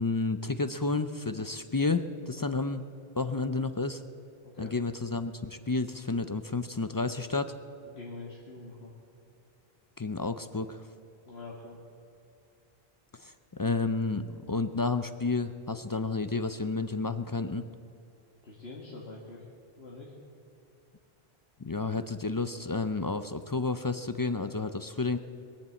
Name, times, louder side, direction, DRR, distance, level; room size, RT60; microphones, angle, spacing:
voice 1, 0.0-2.8 3.2-4.0 4.6-7.5 10.0-10.8 13.2-17.6 21.6-25.2, left 3 dB, 35° left, 10 dB, 0.3 m, -31 dB
voice 2, 2.4-2.7 4.4-4.7 7.8-8.9 11.3-11.8 18.4-19.4 19.8-20.1, left 3 dB, 85° left, -4 dB, 2.0 m, -45 dB
21.5 x 7.3 x 8.2 m, 2.4 s
omnidirectional pair, 1.0 m